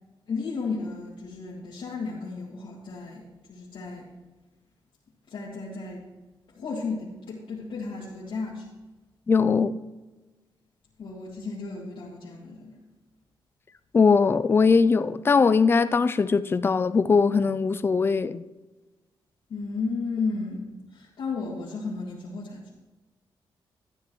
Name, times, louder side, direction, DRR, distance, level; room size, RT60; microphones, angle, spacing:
voice 1, 0.3-3.2 3.5-4.0 5.3-6.0 6.5-8.7 11.0-12.7 19.5-22.7, left 4 dB, 75° left, 1.9 m, -33 dB
voice 2, 9.3-9.7 13.9-18.4, left 5 dB, 25° left, 0.3 m, -21 dB
12.5 x 9.9 x 3.1 m
wide cardioid pair, 125°, 9 cm